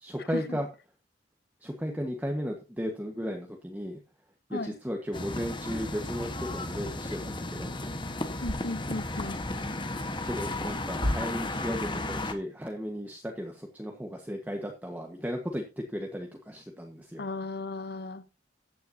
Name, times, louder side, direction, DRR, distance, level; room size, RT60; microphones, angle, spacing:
voice 1, 0.0-0.7 1.6-4.0 4.5-7.9 10.2-17.2, equal, 10° right, 1.5 m, -35 dB
sound 1, 5.1-12.3, left 2 dB, 25° left, 1.4 m, -34 dB
sound 2, 8.2-11.2, equal, 80° right, 5.2 m, -38 dB
voice 2, 8.4-9.4 17.2-18.3, left 2 dB, 60° left, 1.0 m, -35 dB
14.5 x 9.2 x 2.8 m
head